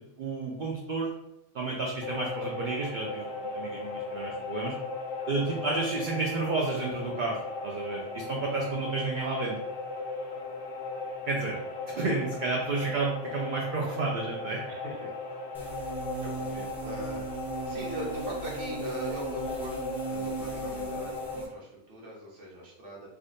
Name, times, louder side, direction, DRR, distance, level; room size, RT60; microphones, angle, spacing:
voice 1, 0.2-1.1 1.5-4.7 5.3-9.6 11.3-11.6 11.9-14.6, right 3 dB, 60° right, -1 dB, 0.5 m, -31 dB
sound 1, 2.0-21.4, left 3 dB, 60° left, 0.7 m, -37 dB
voice 2, 14.7-15.2 15.6-15.9 16.2-23.1, right 1 dB, 80° right, -3 dB, 1.3 m, -41 dB
sound 2, 15.5-21.5, right 5 dB, ahead, 0.4 m, -39 dB
3.4 x 2.5 x 2.5 m, 0.86 s
omnidirectional pair, 1.2 m